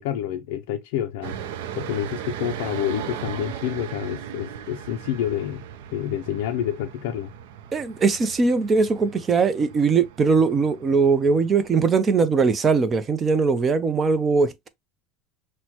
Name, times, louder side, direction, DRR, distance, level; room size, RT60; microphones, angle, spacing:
voice 1, 0.0-1.4 1.7-5.6 5.9-7.3, left 10 dB, 80° left, 0.4 m, -28 dB
sound 1, 1.2-11.9, right 9 dB, 80° right, 0.5 m, -38 dB
voice 2, 7.7-14.7, right 4 dB, 25° right, 0.5 m, -20 dB
6.0 x 2.1 x 2.8 m
supercardioid pair, 140°, 0 cm